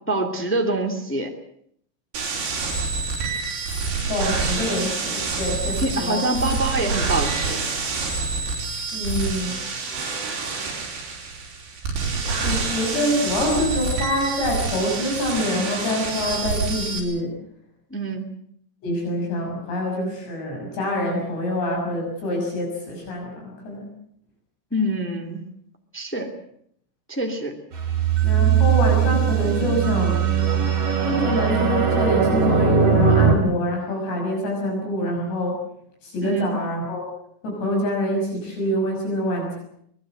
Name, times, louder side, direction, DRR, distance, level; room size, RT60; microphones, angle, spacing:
voice 1, 0.1-1.3 5.8-7.7 17.9-18.2 24.7-25.4 25.9-26.3 27.1-27.5 36.2-36.6, right 1 dB, 5° left, 3 dB, 1.3 m, -25 dB
sound 1, 2.1-17.0, right 4 dB, 70° right, 7.1 m, -27 dB
voice 2, 4.1-6.2 8.9-9.6 12.4-17.4 18.8-23.9 28.2-30.2 31.0-35.6 36.0-37.1 37.4-39.6, left 1 dB, 70° left, 0 dB, 8.3 m, -25 dB
sound 2, 27.7-33.3, right 7 dB, 40° right, 3.7 m, -19 dB
24.0 x 21.0 x 7.8 m, 0.68 s
omnidirectional pair, 5.2 m